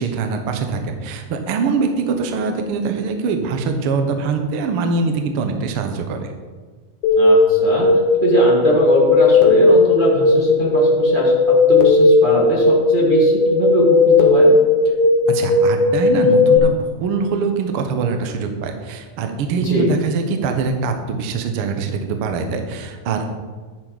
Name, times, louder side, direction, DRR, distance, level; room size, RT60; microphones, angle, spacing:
voice 1, 0.0-6.3 15.3-23.3, right 4 dB, 65° right, 5 dB, 1.3 m, -23 dB
sound 1, 7.0-16.6, left 3 dB, 75° left, 2.6 m, -15 dB
voice 2, 7.1-7.9 8.2-11.3 11.7-14.5 19.6-19.9, right 1 dB, 40° right, -4 dB, 0.6 m, -21 dB
10.5 x 9.6 x 4.0 m, 1.4 s
omnidirectional pair, 3.9 m